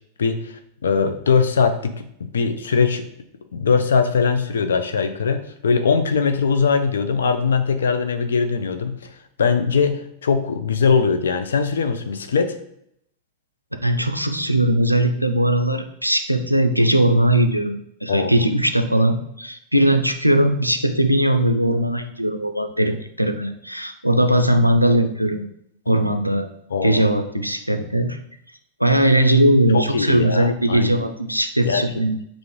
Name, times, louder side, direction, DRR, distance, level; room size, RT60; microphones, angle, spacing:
voice 1, 0.2-3.0 3.5-9.0 9.4-12.6 18.1-18.4 26.7-27.0 28.0-28.1 29.7-30.9 31.6-31.8, left 5 dB, 65° left, 8 dB, 0.4 m, -21 dB
voice 2, 13.8-25.5 25.9-26.5 26.8-28.2 28.8-32.2, right 1 dB, 90° right, 6 dB, 0.4 m, -19 dB
3.6 x 2.5 x 4.6 m, 0.74 s
figure-of-eight pair, 90°, 0 cm